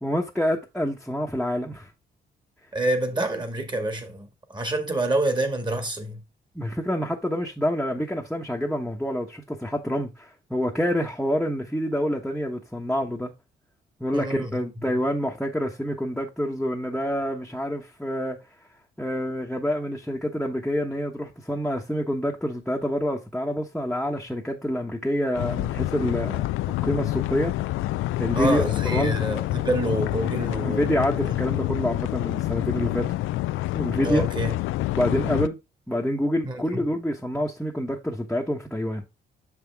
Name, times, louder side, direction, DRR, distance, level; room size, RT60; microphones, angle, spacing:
voice 1, 0.0-1.9 6.5-13.3 14.0-18.4 19.0-26.5 26.8-27.5 28.2-28.6 28.9-29.3 30.6-33.1 33.7-34.3 34.9-35.6 35.9-39.0, equal, 5° left, 1.1 m, -27 dB
voice 2, 2.7-6.2 14.1-14.6 28.3-31.1 34.0-34.6 35.2-35.3 36.4-36.6, right 1 dB, 20° right, 1.8 m, -27 dB
sound 1, 25.3-35.5, left 16 dB, 85° left, 0.4 m, -27 dB
6.7 x 5.8 x 3.4 m
cardioid pair, 90°, 20 cm